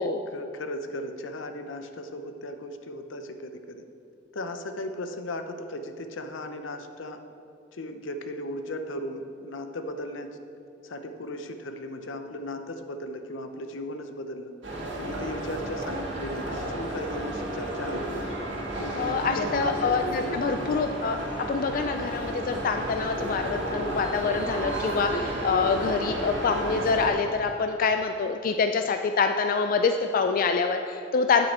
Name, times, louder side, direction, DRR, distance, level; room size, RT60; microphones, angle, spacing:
voice 1, 0.0-3.8 4.3-7.2 7.7-10.4 10.8-14.5 15.0-18.3 18.8-20.8 21.8-22.1, left 1 dB, 75° left, 7 dB, 0.7 m, -36 dB
sound 1, 14.6-27.1, right 1 dB, 70° right, 1.8 m, -32 dB
voice 2, 19.0-21.2 21.5-31.5, left 5 dB, 45° left, 6 dB, 0.3 m, -26 dB
8.9 x 7.7 x 4.3 m, 2.7 s
head